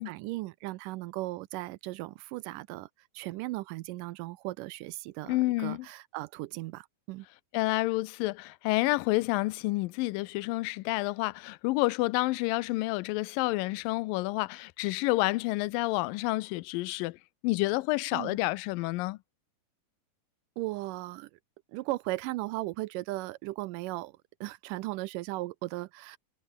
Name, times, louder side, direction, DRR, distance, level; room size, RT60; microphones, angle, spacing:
voice 1, 0.0-2.9 3.1-7.3 18.1-18.4 20.6-21.3 21.7-26.2, right 19 dB, 80° right, 2.1 m, -37 dB
voice 2, 5.3-5.9 7.5-17.2 17.4-19.2, left 21 dB, 80° left, 2.2 m, -29 dB
omnidirectional pair, 4.1 m